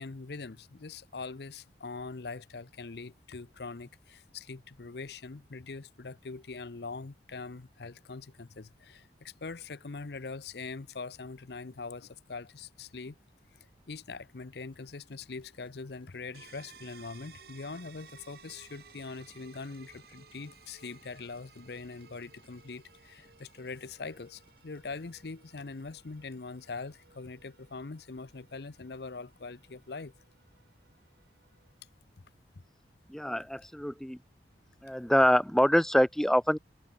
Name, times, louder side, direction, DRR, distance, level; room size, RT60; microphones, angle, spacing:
voice 1, 0.0-13.2 13.5-30.1 32.5-32.6, left 4 dB, 60° left, 0.7 m, -42 dB
sound 1, 14.7-26.2, left 2 dB, 30° left, 5.5 m, -68 dB
sound 2, 16.3-31.9, right 6 dB, 55° right, 1.7 m, -58 dB
voice 2, 33.1-34.2 34.8-36.6, equal, ahead, 0.4 m, -25 dB
head